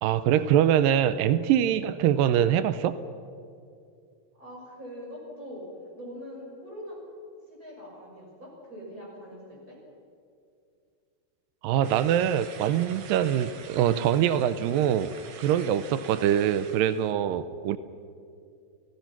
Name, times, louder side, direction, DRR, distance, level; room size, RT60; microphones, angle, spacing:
voice 1, 0.0-3.0 11.6-15.1 15.4-17.8, right 10 dB, 90° right, 13 dB, 1.9 m, -24 dB
voice 2, 4.4-5.7 5.9-7.0 7.5-9.8, equal, 20° right, -4 dB, 7.2 m, -43 dB
sound 1, 11.8-17.1, right 7 dB, 65° right, 1.9 m, -47 dB
29.5 x 17.5 x 5.9 m, 2.4 s
omnidirectional pair, 4.7 m